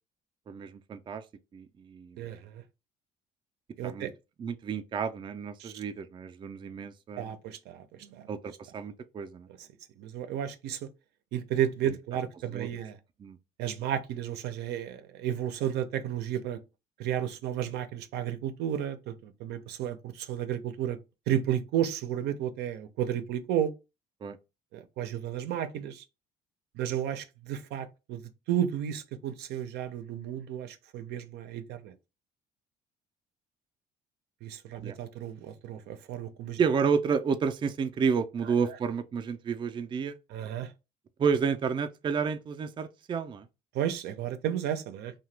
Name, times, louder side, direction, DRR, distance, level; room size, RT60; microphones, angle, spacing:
voice 1, 0.5-1.2 1.5-2.2 3.8-4.1 4.4-7.4 8.3-9.5 11.9-12.0 12.5-12.7 13.2-13.4 24.2-24.4 34.8-35.0 36.6-40.2 41.2-43.5, right 6 dB, 30° right, 0.3 m, -30 dB
voice 2, 2.2-2.6 3.8-4.1 5.6-5.7 7.2-8.3 10.0-10.9 11.3-13.0 13.6-16.6 17.0-21.0 21.3-23.7 24.7-26.0 26.7-28.2 28.5-31.9 34.4-36.6 40.3-40.7 43.7-45.1, right 10 dB, 80° right, 0.5 m, -32 dB
2.8 x 2.2 x 3.2 m
cardioid pair, 110°, 17 cm